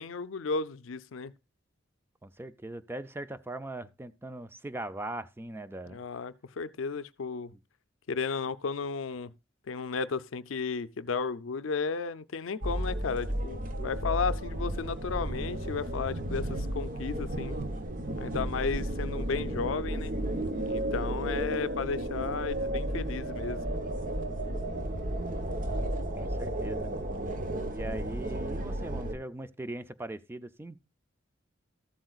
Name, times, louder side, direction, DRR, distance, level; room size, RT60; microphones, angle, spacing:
voice 1, 0.0-1.3 5.9-7.5 8.1-9.3 9.7-17.6 18.2-20.1 20.6-23.6, left 5 dB, 85° left, 0.5 m, -34 dB
voice 2, 2.2-6.0 26.1-26.9 27.7-30.8, right 1 dB, 10° right, 0.4 m, -40 dB
sound 1, 12.6-29.1, right 1 dB, 45° right, 1.0 m, -33 dB
13.5 x 7.7 x 2.4 m
head